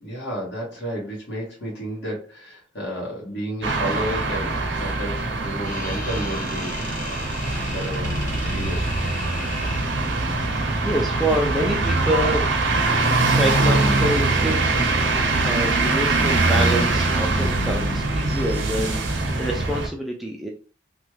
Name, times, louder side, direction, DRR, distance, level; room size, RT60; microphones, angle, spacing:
voice 1, 0.0-6.8 7.6-8.9, equal, 60° left, -4 dB, 1.5 m, -32 dB
sound 1, 3.6-19.9, right 2 dB, 75° right, 0.7 m, -23 dB
sound 2, 5.6-10.0, left 3 dB, 45° left, 1.0 m, -36 dB
voice 2, 10.6-12.5 12.9-20.5, equal, ahead, 0 dB, 0.3 m, -27 dB
3.1 x 2.2 x 3.1 m, 0.39 s
head